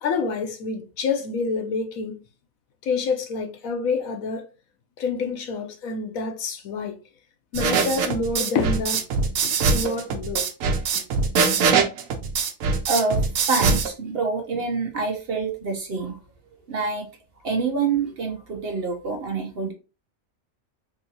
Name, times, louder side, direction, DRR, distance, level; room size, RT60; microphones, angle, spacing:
voice 1, 0.0-2.2 2.8-4.5 5.0-7.0 7.5-9.0 9.4-10.4, left 4 dB, 85° left, 1.1 m, -27 dB
sound 1, 7.5-13.9, right 5 dB, 80° right, 1.0 m, -22 dB
voice 2, 12.9-16.2 16.7-17.1 17.4-19.7, right 4 dB, 55° right, 0.8 m, -26 dB
3.7 x 2.6 x 2.8 m
omnidirectional pair, 1.4 m